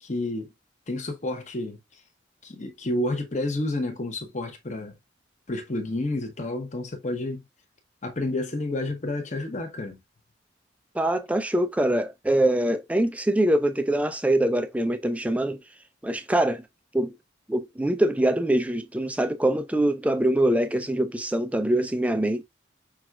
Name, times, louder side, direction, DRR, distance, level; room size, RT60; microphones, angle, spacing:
voice 1, 0.0-0.5 0.9-2.0 2.4-4.9 5.5-7.4 8.0-10.0, left 2 dB, 40° left, 0.9 m, -30 dB
voice 2, 10.9-15.6 16.0-16.6 16.9-17.1 17.5-22.4, right 1 dB, 5° right, 0.3 m, -24 dB
5.9 x 2.4 x 2.3 m
head